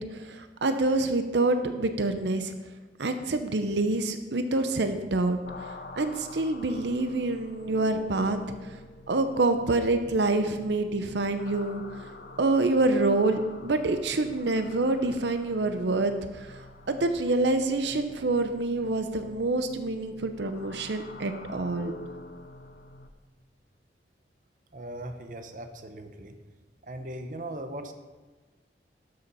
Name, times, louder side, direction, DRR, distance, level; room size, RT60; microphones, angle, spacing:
voice 1, 0.0-2.5 3.0-5.4 5.9-8.4 9.1-11.8 12.4-16.6 16.9-21.9, right 2 dB, 80° right, 8 dB, 0.7 m, -26 dB
sound 1, 5.5-23.1, left 2 dB, 60° left, 0.8 m, -47 dB
voice 2, 24.7-26.4 26.8-27.9, right 1 dB, 45° right, 7 dB, 0.8 m, -39 dB
12.0 x 6.8 x 5.5 m, 1.3 s
head